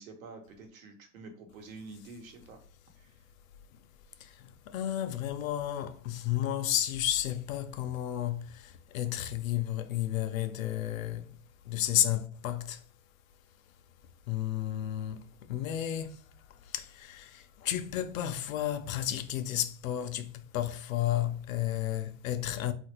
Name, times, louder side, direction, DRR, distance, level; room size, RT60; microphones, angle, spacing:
voice 1, 0.0-2.6 3.0-3.2, right 3 dB, 85° right, 1.0 m, -48 dB
voice 2, 4.2-11.4 11.6-12.8 14.3-22.7, left 12 dB, 80° left, 0.5 m, -32 dB
3.1 x 2.5 x 2.9 m
supercardioid pair, 145°, 40 cm